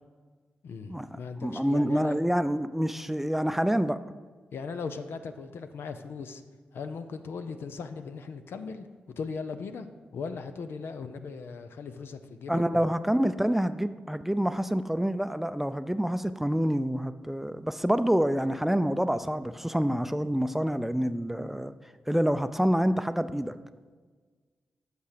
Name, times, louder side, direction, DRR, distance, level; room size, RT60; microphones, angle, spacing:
voice 1, 0.6-2.2 4.5-6.4 6.7-8.9 9.2-9.9 10.1-12.9, left 5 dB, 75° left, 9 dB, 0.5 m, -38 dB
voice 2, 1.4-4.0 12.5-21.7 22.1-23.6, equal, 5° right, 11 dB, 0.5 m, -27 dB
8.2 x 6.0 x 5.0 m, 1.4 s
supercardioid pair, 40°, 4 cm